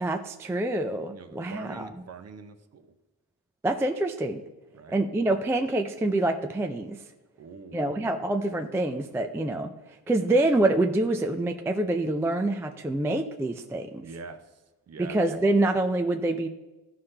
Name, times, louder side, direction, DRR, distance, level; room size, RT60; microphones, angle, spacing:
voice 1, 0.0-1.9 3.6-4.4 4.9-7.0 7.7-14.1 15.0-16.5, right 2 dB, 5° right, 5 dB, 0.3 m, -26 dB
voice 2, 1.1-2.9 4.7-5.0 7.4-8.0 14.0-15.2, right 4 dB, 40° right, 9 dB, 0.8 m, -44 dB
14.5 x 5.6 x 3.3 m, 1.1 s
cardioid pair, 150°, 39 cm